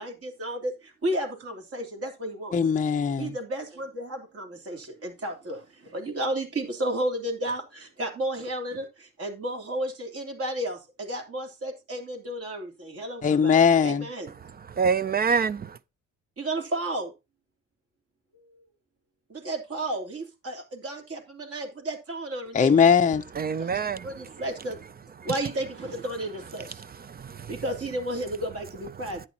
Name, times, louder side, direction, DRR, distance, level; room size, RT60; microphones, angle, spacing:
voice 1, 0.0-2.5 3.2-14.3 16.4-17.1 18.3-18.6 19.3-22.8 23.6-24.8 25.2-26.8 27.5-29.2, right 1 dB, 50° right, 3.2 m, -33 dB
voice 2, 2.5-3.3 13.2-14.1 22.5-23.2, left 6 dB, 25° left, 0.5 m, -20 dB
voice 3, 14.8-15.8 23.4-24.1 27.1-27.5, right 6 dB, 30° right, 0.5 m, -26 dB
11.0 x 8.7 x 2.8 m
cardioid pair, 90°, 30 cm